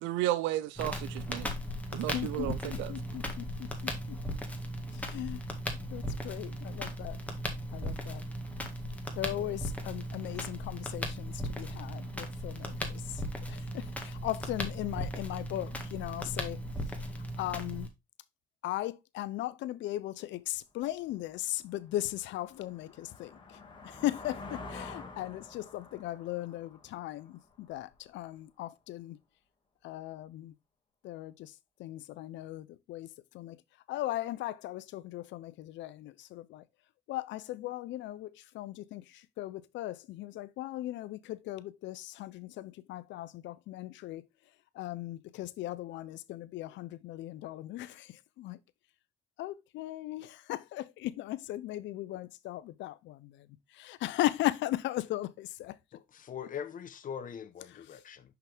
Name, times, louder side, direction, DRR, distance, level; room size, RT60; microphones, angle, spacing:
voice 1, 0.0-1.5 1.9-2.9, right 15 dB, 85° right, 0.6 m, -33 dB
Crackle, 0.8-17.9, equal, 5° left, 1.8 m, -37 dB
voice 2, 2.1-4.2 4.9-5.4 5.9-7.2 7.7-8.2 9.2-16.6 16.9-17.9 18.6-29.2 29.8-30.5 31.0-31.5 31.8-33.6 33.9-36.6 37.1-44.3 44.7-48.6 49.4-55.8, left 15 dB, 75° left, 0.6 m, -38 dB
sound 1, 20.8-20.9 21.4-28.0, left 3 dB, 25° left, 2.0 m, -48 dB
voice 3, 55.9-58.4, left 8 dB, 45° left, 1.0 m, -42 dB
5.9 x 5.8 x 3.4 m
supercardioid pair, 85°, 19 cm